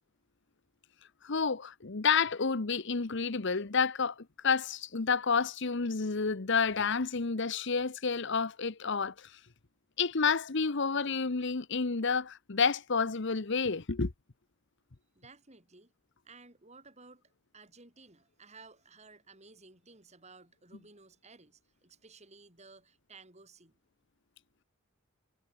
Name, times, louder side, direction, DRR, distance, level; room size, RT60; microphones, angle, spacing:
voice 1, 1.2-9.3 10.0-14.1, left 5 dB, 55° left, 1.0 m, -30 dB
voice 2, 15.2-15.9 16.2-23.8, right 3 dB, 30° right, 5.5 m, -56 dB
head